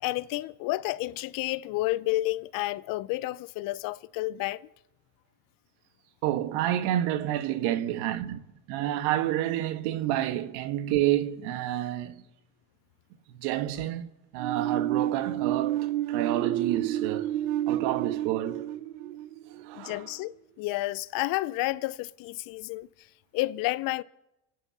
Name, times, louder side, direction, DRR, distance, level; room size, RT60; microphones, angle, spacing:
voice 1, 0.0-4.6 19.7-22.9 23.3-24.0, left 18 dB, 55° left, 0.6 m, -30 dB
voice 2, 6.2-8.4 8.7-12.2 13.4-14.1 14.3-17.3 17.7-18.7 19.6-20.0, right 13 dB, 70° right, 1.4 m, -29 dB
sound 1, 14.4-20.1, right 13 dB, 85° right, 0.8 m, -30 dB
26.0 x 9.3 x 6.0 m
supercardioid pair, 95°, 41 cm